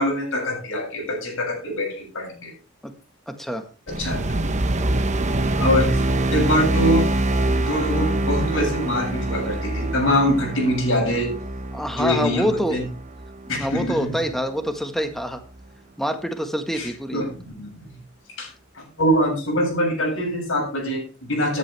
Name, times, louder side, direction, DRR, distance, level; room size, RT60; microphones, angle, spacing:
voice 1, 0.0-2.5 3.9-4.4 5.6-7.2 7.5-11.3 12.0-12.9 13.5-14.2 16.7-18.0 18.4-18.5 18.7-21.6, equal, 65° left, -1 dB, 7.9 m, -24 dB
voice 2, 3.3-3.6 11.7-12.8 13.6-15.4 16.0-17.2, equal, ahead, 6 dB, 1.7 m, -26 dB
sound 1, 3.9-14.3, right 1 dB, 35° right, 1.0 m, -25 dB
14.0 x 11.0 x 3.5 m, 0.33 s
head